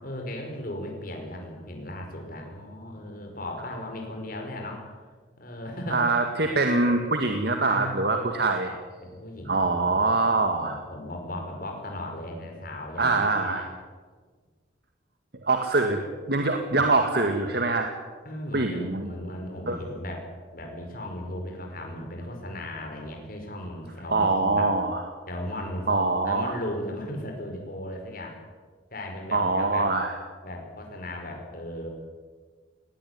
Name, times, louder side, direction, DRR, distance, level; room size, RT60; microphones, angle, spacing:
voice 1, 0.0-4.8 5.4-6.6 7.6-8.7 9.0-13.7 16.8-16.9 18.3-24.7 25.3-25.9 26.2-28.4 28.9-29.9 30.4-31.9, left 1 dB, 50° left, 2 dB, 5.1 m, -37 dB
voice 2, 5.9-8.7 9.5-10.8 13.0-13.7 15.4-16.0 16.3-17.9 18.5-19.1 19.7-19.8 24.1-25.0 25.9-26.5 29.3-30.1, right 3 dB, 60° right, 5 dB, 2.0 m, -24 dB
20.0 x 19.0 x 9.8 m, 1.5 s
head